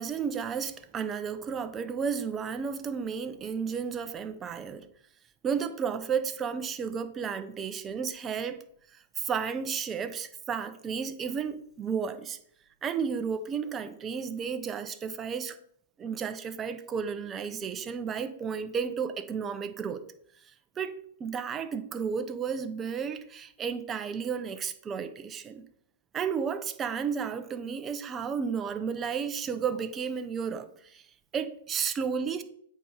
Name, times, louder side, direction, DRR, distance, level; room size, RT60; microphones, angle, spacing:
voice 1, 0.0-4.9 5.4-8.6 8.9-12.4 12.8-15.6 16.0-20.0 20.4-20.9 21.2-25.6 26.1-31.1 31.3-32.4, right 6 dB, 20° right, 0.7 m, -33 dB
8.3 x 4.3 x 5.1 m
hypercardioid pair, 140°, 0 cm